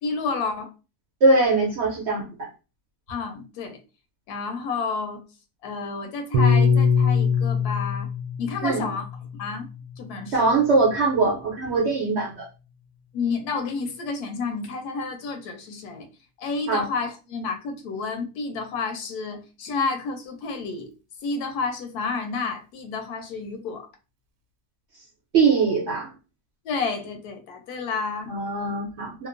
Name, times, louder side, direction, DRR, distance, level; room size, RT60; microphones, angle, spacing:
voice 1, 0.0-0.7 3.1-3.8 4.3-5.2 5.6-8.1 8.4-9.7 10.0-10.6 13.1-16.1 16.4-20.9 21.2-23.9 26.6-28.3, left 4 dB, 85° left, 1.1 m, -30 dB
voice 2, 1.2-2.5 8.6-8.8 10.3-12.4 16.7-16.8 25.3-26.1 28.3-29.3, right 3 dB, 60° right, 0.8 m, -21 dB
Piano, 6.3-10.8, left 5 dB, 90° right, 1.1 m, -23 dB
2.8 x 2.0 x 2.5 m
omnidirectional pair, 1.6 m